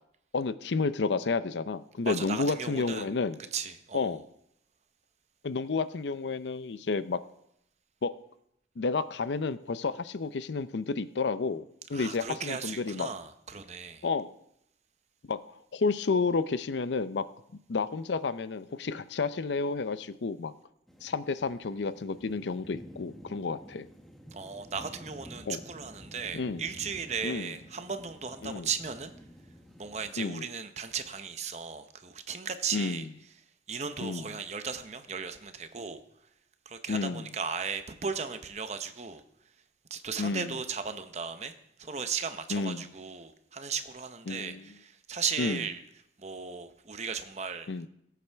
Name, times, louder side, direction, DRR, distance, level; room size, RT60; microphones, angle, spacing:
voice 1, 0.3-3.4 3.9-4.2 5.4-7.2 8.0-8.1 8.8-11.6 11.9-13.1 14.0-14.3 15.3-15.4 15.7-17.2 17.7-20.5 21.0-23.9 25.5-25.6 26.3-26.6 27.2-27.5 28.4-28.7 30.2-30.4 32.7-33.1 34.0-34.2 36.9-37.2 40.2-40.5 42.5-42.9 44.3-44.7 45.4-45.6 47.7-47.9, left 4 dB, 90° left, 14 dB, 0.5 m, -31 dB
voice 2, 2.0-3.1 3.5-4.2 11.9-14.1 24.3-29.1 29.8-33.1 33.7-36.0 36.7-39.2 39.9-45.8 46.2-47.7, right 6 dB, 40° right, 9 dB, 0.8 m, -36 dB
sound 1, 20.9-30.2, equal, ahead, 0.9 m, -50 dB
18.0 x 8.3 x 3.5 m, 0.75 s
head